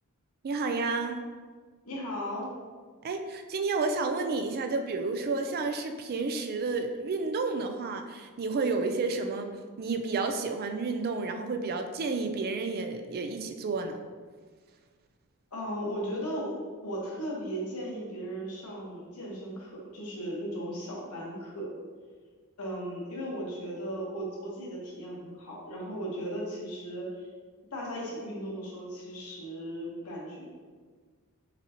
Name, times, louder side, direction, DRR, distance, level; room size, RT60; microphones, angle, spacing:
voice 1, 0.4-1.2 3.0-14.0, right 3 dB, 45° right, 6 dB, 0.3 m, -31 dB
voice 2, 1.8-2.5 15.5-21.7 22.6-27.3 27.7-30.4, equal, 85° left, -4 dB, 1.2 m, -36 dB
6.0 x 2.7 x 2.8 m, 1.5 s
head